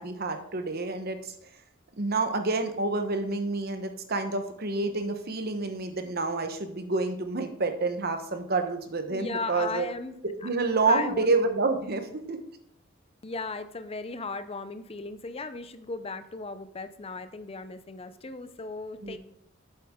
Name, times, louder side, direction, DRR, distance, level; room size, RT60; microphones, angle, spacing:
voice 1, 0.0-1.3 2.0-9.9 10.4-12.4 19.0-19.2, right 3 dB, 50° right, 7 dB, 1.0 m, -28 dB
voice 2, 9.1-10.5 10.8-11.3 13.2-19.2, left 3 dB, 30° left, 11 dB, 0.5 m, -36 dB
8.1 x 7.6 x 3.7 m, 0.70 s
head